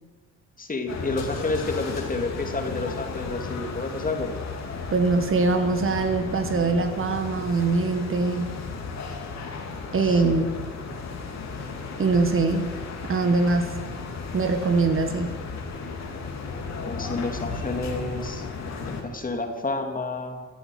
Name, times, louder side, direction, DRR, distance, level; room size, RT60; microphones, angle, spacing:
voice 1, 0.6-4.3 10.0-10.4 16.9-18.4 18.9-20.5, left 3 dB, 30° left, 4 dB, 2.4 m, -30 dB
sound 1, 0.9-19.0, left 4 dB, 60° left, 2.8 m, -34 dB
voice 2, 4.9-8.5 9.9-10.5 12.0-12.7 13.1-13.7 14.3-15.3, right 3 dB, 45° right, 7 dB, 1.7 m, -23 dB
16.0 x 8.4 x 9.1 m, 1.4 s
cardioid pair, 90°, 30 cm